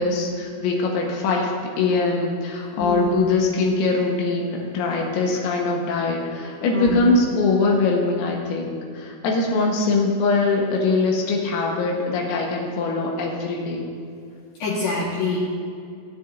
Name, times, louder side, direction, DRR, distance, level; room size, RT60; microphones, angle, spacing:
voice 1, 0.0-1.5 1.8-13.8, left 3 dB, 85° left, -1 dB, 4.0 m, -22 dB
voice 2, 2.8-3.1 6.7-7.0 14.6-15.4, left 3 dB, 65° left, -7 dB, 3.4 m, -25 dB
25.5 x 8.7 x 2.7 m, 2.4 s
omnidirectional pair, 5.9 m